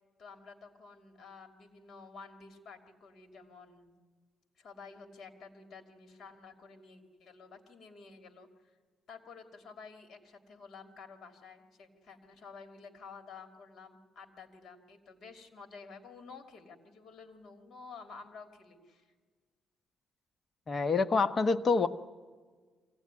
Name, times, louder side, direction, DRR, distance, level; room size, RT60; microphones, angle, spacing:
voice 1, 0.2-3.9 4.6-8.5 9.1-19.1, left 4 dB, 55° left, 6 dB, 2.7 m, -51 dB
voice 2, 20.7-21.9, left 4 dB, 40° left, 10 dB, 1.1 m, -26 dB
24.0 x 16.5 x 9.7 m, 1.5 s
cardioid pair, 90°, 0 cm